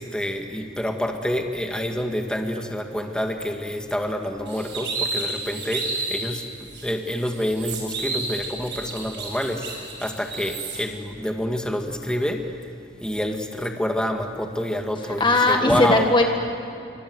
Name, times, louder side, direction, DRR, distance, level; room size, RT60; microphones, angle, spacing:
voice 1, 0.0-6.4 6.8-9.7 10.0-12.4 13.0-16.1, equal, 5° left, 3 dB, 2.0 m, -27 dB
sound 1, 4.5-6.3 6.7-6.8 7.2-10.8, right 3 dB, 70° right, 7.2 m, -31 dB
voice 2, 15.1-16.3, left 2 dB, 25° left, 3 dB, 1.7 m, -19 dB
28.0 x 25.5 x 8.1 m, 2.6 s
head